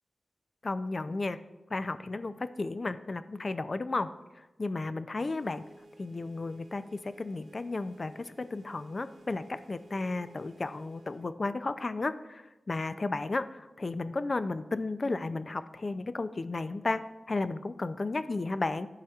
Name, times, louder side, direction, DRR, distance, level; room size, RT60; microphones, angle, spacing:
voice 1, 0.6-1.4 1.7-4.1 4.4-5.6 6.0-18.9, left 3 dB, 45° left, 12 dB, 0.4 m, -33 dB
sound 1, 5.2-11.3, right 2 dB, 85° right, 0.7 m, -56 dB
11.5 x 4.9 x 2.3 m, 1.0 s
wide cardioid pair, 80°, 0 cm